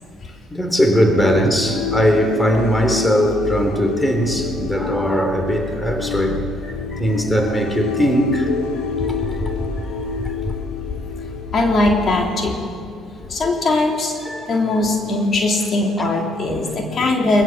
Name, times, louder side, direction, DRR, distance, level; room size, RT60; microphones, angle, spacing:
voice 1, 0.5-6.4 7.0-8.5 9.0-9.5 10.4-10.6 13.2-13.6 14.2-14.6 16.0-16.1 16.6-17.1, equal, 10° left, 5 dB, 3.8 m, -20 dB
sound 1, 1.2-12.4, left 5 dB, 75° left, 2.7 m, -28 dB
voice 2, 9.9-10.2 11.5-12.7 13.3-14.1 14.5-17.4, left 2 dB, 45° left, 1 dB, 3.5 m, -20 dB
21.5 x 21.0 x 7.5 m, 2.3 s
hypercardioid pair, 60°, 0 cm